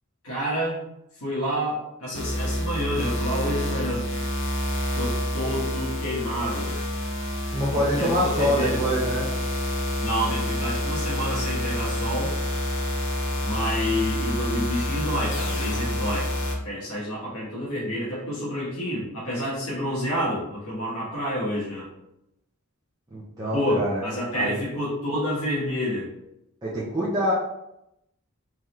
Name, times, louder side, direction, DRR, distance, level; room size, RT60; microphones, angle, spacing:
voice 1, 0.2-0.8 1.2-4.1 4.9-6.8 7.6-8.8 10.0-12.3 13.4-21.9 23.5-26.1, equal, 75° left, -7 dB, 1.2 m, -29 dB
sound 1, 2.1-16.6, left 1 dB, 60° left, 0.7 m, -28 dB
voice 2, 7.5-9.3 23.1-24.0 24.3-24.6 26.6-27.3, equal, 20° right, -9 dB, 0.7 m, -25 dB
3.7 x 2.9 x 3.1 m, 0.85 s
head